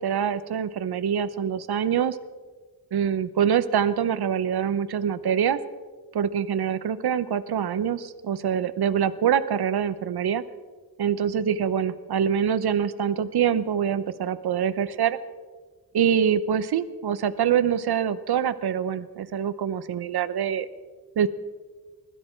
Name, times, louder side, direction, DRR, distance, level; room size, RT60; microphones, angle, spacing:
voice 1, 0.0-2.2 2.9-5.6 6.1-10.4 11.0-15.2 15.9-20.7 21.2-21.3, right 8 dB, 80° right, 13 dB, 0.8 m, -25 dB
21.0 x 13.0 x 4.4 m, 1.4 s
wide cardioid pair, 150°, 38 cm